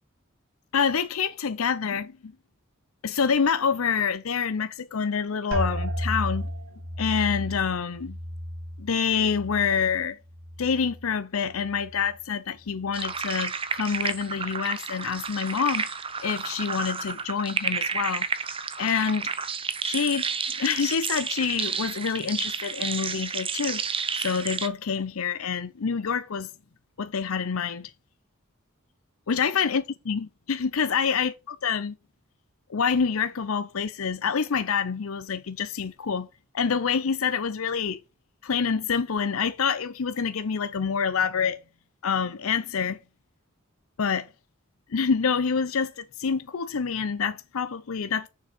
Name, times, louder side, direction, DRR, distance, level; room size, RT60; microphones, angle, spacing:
voice 1, 0.7-2.3 3.0-6.5 7.0-8.2 8.8-10.2 10.6-15.9 16.2-18.3 18.8-19.3 19.8-20.2 20.6-23.8 24.1-26.5 27.0-27.9 29.3-31.9 32.7-36.3 36.5-38.0 38.4-41.6 42.0-43.0 44.0-44.3 44.9-48.3, left 6 dB, 80° left, 0.6 m, -27 dB
sound 1, 5.5-11.1 11.5-12.2 12.7-13.1, equal, 90° right, 2.8 m, -34 dB
sound 2, 12.9-24.7, right 5 dB, 25° right, 0.9 m, -31 dB
6.9 x 6.2 x 7.1 m
head